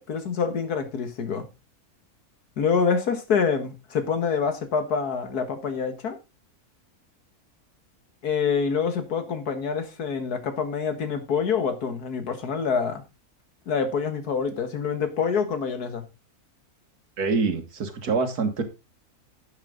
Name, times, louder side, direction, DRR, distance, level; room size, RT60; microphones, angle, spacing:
voice 1, 0.0-1.5 2.6-6.2 8.2-13.0 13.7-16.0, left 6 dB, 90° left, 2.1 m, -26 dB
voice 2, 17.2-18.6, right 4 dB, 85° right, 2.1 m, -25 dB
11.5 x 7.4 x 3.8 m
omnidirectional pair, 1.6 m